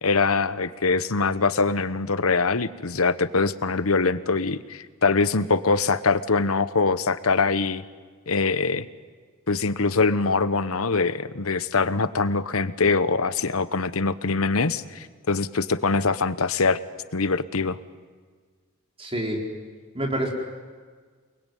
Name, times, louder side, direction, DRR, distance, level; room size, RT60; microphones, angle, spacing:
voice 1, 0.0-7.8 8.3-8.8 9.5-16.8 17.1-17.8, left 4 dB, 75° left, 14 dB, 1.1 m, -23 dB
voice 2, 19.0-19.4 19.9-20.3, right 1 dB, 25° right, 1 dB, 4.5 m, -27 dB
28.5 x 21.0 x 9.3 m, 1.5 s
head